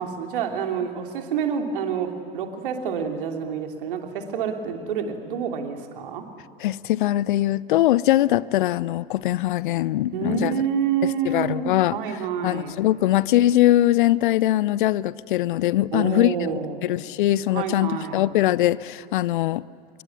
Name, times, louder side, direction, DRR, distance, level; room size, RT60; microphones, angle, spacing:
voice 1, 0.0-6.3 10.1-12.8 15.9-16.9 17.5-18.3, right 7 dB, 60° right, 4 dB, 3.1 m, -28 dB
voice 2, 6.6-10.5 11.3-12.0 12.4-16.3 16.8-19.6, left 14 dB, 60° left, 21 dB, 0.6 m, -21 dB
26.0 x 22.5 x 9.8 m, 2.6 s
figure-of-eight pair, 80°, 29 cm